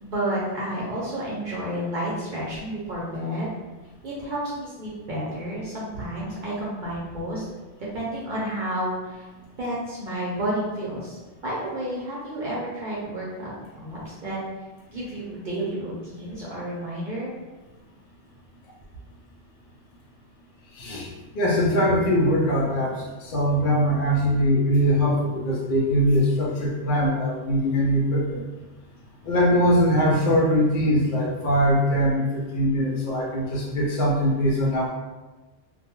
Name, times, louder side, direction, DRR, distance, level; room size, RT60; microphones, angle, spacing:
voice 1, 0.0-3.5 4.0-7.5 7.8-9.3 9.6-14.4 14.9-17.3, right 1 dB, 55° right, -7 dB, 0.6 m, -31 dB
voice 2, 20.7-21.1 21.3-28.4 29.2-34.9, equal, 60° left, -3 dB, 0.6 m, -22 dB
2.3 x 2.2 x 2.9 m, 1.2 s
omnidirectional pair, 1.2 m